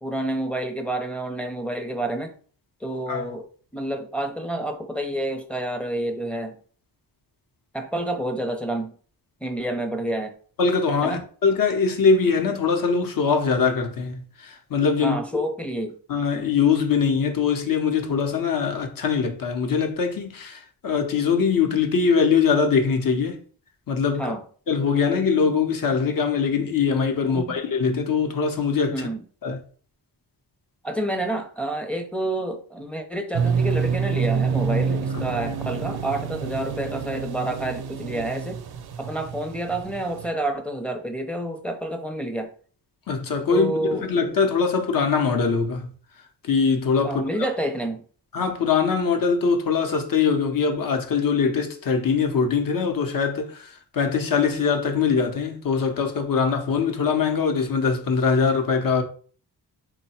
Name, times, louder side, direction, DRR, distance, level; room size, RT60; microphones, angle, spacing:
voice 1, 0.0-2.3 2.8-3.5 3.7-6.6 7.7-9.0 9.4-10.3 11.0-11.2 15.0-16.0 24.2-24.4 27.3-27.6 28.9-29.2 30.8-38.6 39.0-42.5 43.5-44.1 47.0-48.0, right 1 dB, 5° left, 0.6 m, -29 dB
voice 2, 10.6-15.2 16.1-23.4 23.9-24.3 24.7-29.1 29.4-29.6 35.1-35.2 43.1-45.9 46.4-47.2 48.3-59.0, left 5 dB, 55° left, 0.8 m, -22 dB
sound 1, 33.3-40.3, right 6 dB, 65° right, 0.5 m, -27 dB
3.8 x 2.2 x 4.2 m
wide cardioid pair, 100°, 41 cm